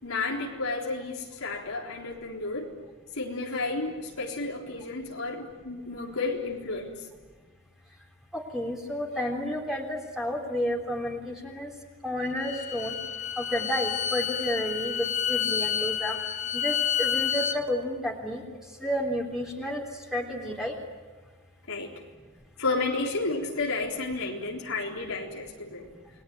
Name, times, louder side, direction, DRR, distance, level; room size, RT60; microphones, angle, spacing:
voice 1, 0.0-2.7 3.1-7.0 21.7-21.9 22.6-25.9, left 3 dB, 85° left, -1 dB, 3.9 m, -32 dB
voice 2, 8.3-11.7 12.0-12.9 13.4-16.2 16.5-18.4 18.8-19.8 20.1-20.7, equal, ahead, -1 dB, 3.6 m, -31 dB
Bowed string instrument, 12.2-17.6, left 9 dB, 35° left, 1.5 m, -29 dB
29.5 x 21.0 x 9.3 m, 1.4 s
head